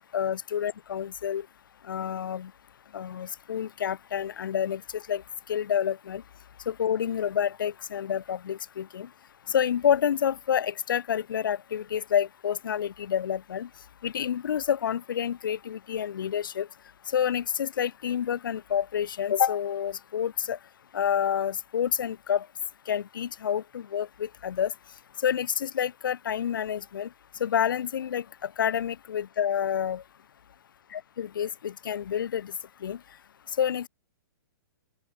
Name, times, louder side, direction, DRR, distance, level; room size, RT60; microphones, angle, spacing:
voice 1, 0.1-1.5 1.9-2.5 2.9-5.2 5.5-6.2 6.7-9.1 9.5-13.7 14.0-16.7 17.1-20.6 20.9-22.5 22.9-24.7 25.2-27.1 27.4-30.0 30.9-32.5 32.8-33.0 33.6-33.9, left 9 dB, 60° left, 3.5 m, -28 dB
open air
hypercardioid pair, 175°, 12 cm